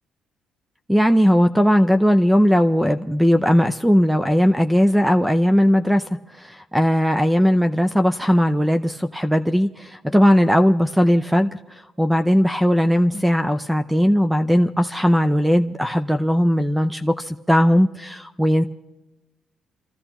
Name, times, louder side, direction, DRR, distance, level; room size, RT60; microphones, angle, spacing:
voice 1, 0.9-6.0 6.4-11.5 12.0-18.6, equal, 5° right, 9 dB, 0.5 m, -18 dB
28.0 x 14.5 x 3.0 m, 1.0 s
cardioid pair, 90°, 0 cm